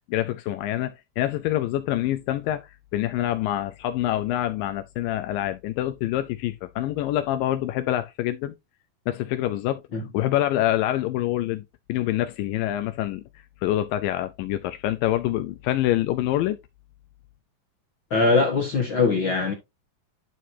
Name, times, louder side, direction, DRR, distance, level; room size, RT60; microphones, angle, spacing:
voice 1, 0.1-8.5 9.1-11.6 11.9-13.2 13.6-16.6, left 13 dB, 80° left, 2.2 m, -26 dB
voice 2, 18.1-19.5, left 4 dB, 60° left, 1.3 m, -21 dB
11.0 x 4.7 x 2.7 m
omnidirectional pair, 4.1 m